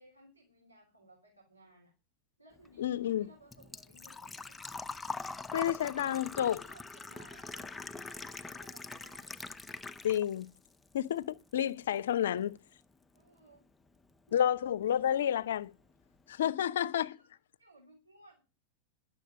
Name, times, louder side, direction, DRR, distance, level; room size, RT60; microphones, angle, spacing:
voice 1, 0.0-1.9 2.4-4.6 5.9-9.4 13.1-13.6 14.3-14.4 16.6-17.1 17.6-18.4, right 1 dB, 90° right, 3.5 m, -60 dB
Engine / Trickle dribble / Fill (with liquid), 2.6-10.5 10.8-11.8 12.1-12.2 14.1-14.2 14.4-14.7 15.1-15.2 15.4-15.5, left 3 dB, 10° left, 0.7 m, -43 dB
voice 2, 2.8-3.3 5.5-6.6 10.0-10.5 10.9-12.6 14.3-15.7 16.3-17.1, left 10 dB, 60° left, 0.6 m, -30 dB
11.0 x 7.5 x 8.5 m
figure-of-eight pair, 90°, 0 cm